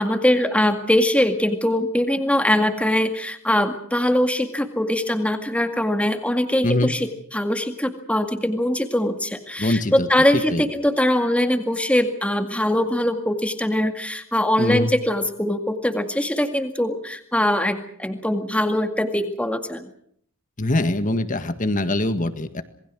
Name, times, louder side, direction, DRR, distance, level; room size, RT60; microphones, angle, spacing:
voice 1, 0.0-19.9, left 1 dB, 5° left, 6 dB, 2.0 m, -22 dB
voice 2, 6.6-6.9 9.6-10.1 10.3-10.7 14.6-14.9 20.6-22.6, left 1 dB, 40° left, 10 dB, 1.8 m, -23 dB
27.0 x 21.0 x 6.3 m, 0.65 s
head